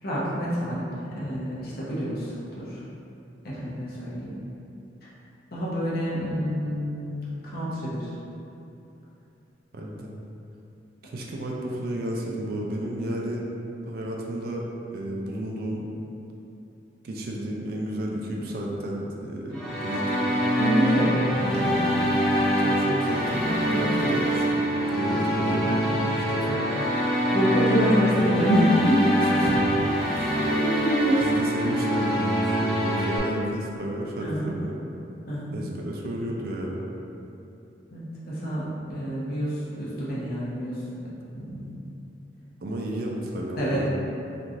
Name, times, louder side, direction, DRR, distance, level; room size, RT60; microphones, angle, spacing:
voice 1, 0.0-2.8 3.4-4.3 5.5-8.1 20.6-22.2 23.3-24.1 25.1-26.7 27.3-29.0 30.4-31.2 34.2-34.5 35.3-35.5 37.9-41.1 41.3-41.8 43.6-43.9, equal, 55° left, -8 dB, 0.7 m, -27 dB
voice 2, 9.7-10.1 11.0-13.4 13.8-15.8 17.0-20.3 22.6-25.7 26.0-26.6 29.2-29.9 30.2-30.4 31.2-34.8 35.5-36.8 42.6-43.9, right 1 dB, 50° right, -1 dB, 0.3 m, -32 dB
sound 1, 19.5-33.2, equal, 5° left, 1.2 m, -24 dB
3.0 x 2.5 x 2.5 m, 2.8 s
head